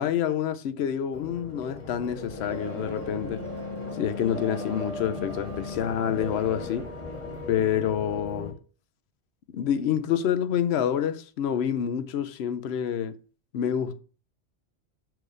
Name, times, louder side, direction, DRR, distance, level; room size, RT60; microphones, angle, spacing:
voice 1, 0.0-3.4 4.0-6.9 7.5-8.5 9.5-13.1 13.5-14.0, left 9 dB, 70° left, 0.8 m, -27 dB
sound 1, 1.1-8.5, left 2 dB, 40° left, 2.3 m, -37 dB
6.6 x 4.7 x 4.9 m
omnidirectional pair, 1.1 m